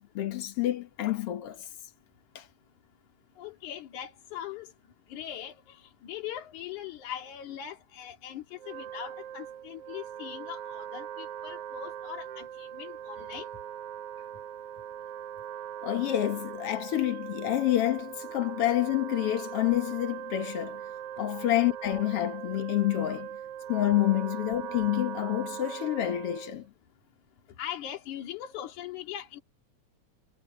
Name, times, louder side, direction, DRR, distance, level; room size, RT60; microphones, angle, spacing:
voice 1, 0.0-1.7 2.4-2.5 15.8-20.8 21.2-23.4 23.7-26.7, left 14 dB, 60° left, 1.9 m, -28 dB
voice 2, 3.4-4.7 5.1-5.8 6.0-13.5 27.6-29.4, left 11 dB, 85° left, 3.4 m, -40 dB
Wind instrument woodwind instrument, 8.5-26.7, right 10 dB, 65° right, 1.6 m, -40 dB
omnidirectional pair, 3.3 m